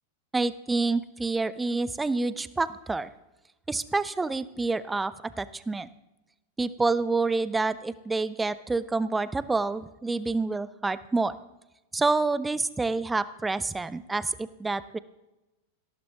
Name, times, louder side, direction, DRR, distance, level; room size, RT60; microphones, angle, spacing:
voice 1, 0.3-3.1 3.7-5.9 6.6-11.4 11.9-15.0, right 3 dB, 10° right, 16 dB, 0.7 m, -28 dB
18.5 x 17.5 x 3.6 m, 1.0 s
figure-of-eight pair, 90°, 0 cm